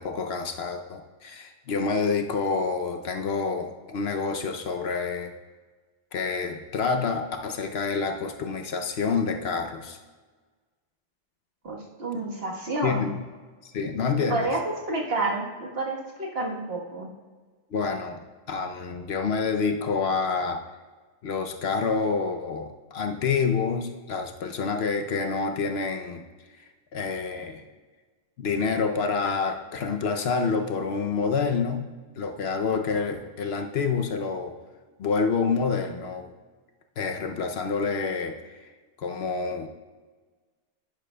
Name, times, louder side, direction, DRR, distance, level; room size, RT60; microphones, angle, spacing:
voice 1, 0.0-5.3 6.1-10.0 12.8-13.2 13.6-14.5 17.7-18.2 18.5-20.6 21.2-26.2 26.9-27.6 28.4-31.9 32.2-34.5 35.0-36.3 37.0-38.3 38.6-38.7 39.0-39.7, left 5 dB, 65° left, 5 dB, 0.8 m, -28 dB
voice 2, 11.6-13.1 14.3-14.6 14.9-17.1, right 2 dB, 55° right, -2 dB, 1.5 m, -29 dB
10.5 x 10.0 x 2.2 m, 1.4 s
omnidirectional pair, 1.2 m